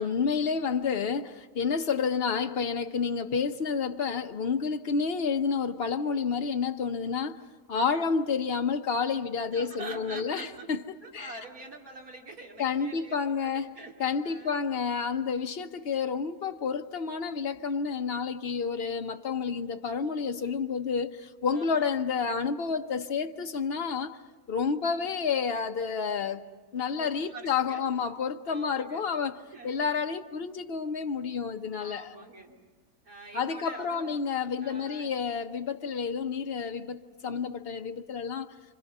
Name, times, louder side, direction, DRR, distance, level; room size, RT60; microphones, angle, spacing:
voice 1, 0.0-7.4 7.7-10.8 11.1-11.3 12.6-24.2 24.5-26.4 26.7-32.1 33.3-38.5, left 5 dB, 45° left, 1.0 m, -30 dB
voice 2, 7.7-8.1 9.5-10.7 11.0-14.0 14.2-14.6 17.5-17.7 21.5-21.8 27.0-27.9 28.5-29.0 29.5-29.7 31.8-32.6 33.0-34.2 34.6-35.1 37.3-37.4, right 3 dB, 65° right, 3.3 m, -45 dB
29.5 x 25.5 x 5.4 m
omnidirectional pair, 1.7 m